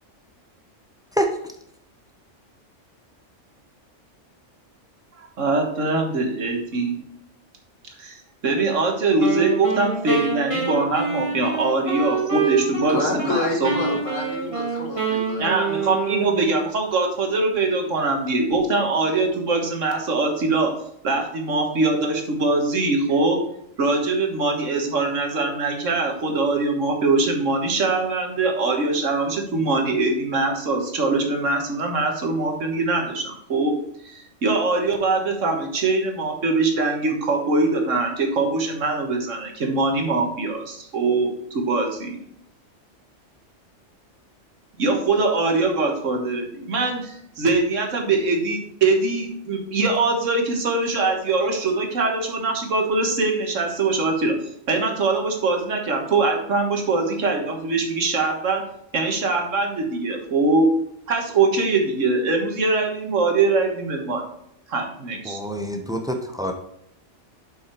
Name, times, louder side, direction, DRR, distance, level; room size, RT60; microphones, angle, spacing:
voice 1, 5.2-7.0 8.0-8.2 8.4-14.0 15.4-20.7 21.0-23.4 23.8-33.8 34.0-42.2 44.8-54.4 54.7-58.6 58.9-60.7 61.1-64.2 64.7-65.4, right 3 dB, 85° right, 3 dB, 1.8 m, -22 dB
Wind instrument woodwind instrument, 9.2-13.4 13.6-16.6, right 5 dB, 25° right, 1.9 m, -26 dB
voice 2, 12.9-15.5, left 2 dB, 80° left, 0 dB, 2.3 m, -28 dB
voice 3, 65.2-66.5, equal, 5° right, 5 dB, 0.7 m, -26 dB
7.3 x 5.7 x 4.5 m, 0.74 s
omnidirectional pair, 1.3 m